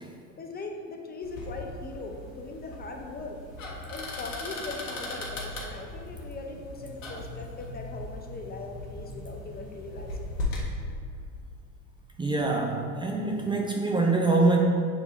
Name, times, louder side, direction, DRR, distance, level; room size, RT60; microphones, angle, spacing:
voice 1, 0.4-3.4 3.9-10.4, left 3 dB, 25° left, 2 dB, 0.7 m, -40 dB
sound 1, 1.2-10.7, left 2 dB, 85° left, 1.4 m, -38 dB
voice 2, 12.2-14.6, right 3 dB, 10° right, -1 dB, 0.6 m, -24 dB
7.2 x 3.5 x 4.1 m, 2.2 s
hypercardioid pair, 85°, 39 cm